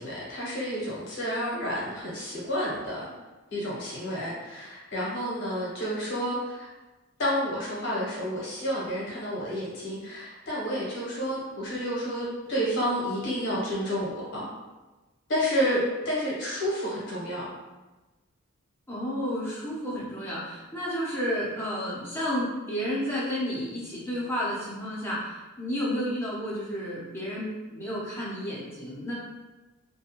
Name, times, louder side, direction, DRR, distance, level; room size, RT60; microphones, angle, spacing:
voice 1, 0.0-3.1 3.5-6.7 7.2-14.4 15.3-17.5, equal, 55° left, -6 dB, 0.8 m, -30 dB
voice 2, 18.9-29.1, equal, 10° left, -7 dB, 0.6 m, -31 dB
2.5 x 2.2 x 2.8 m, 1.1 s
head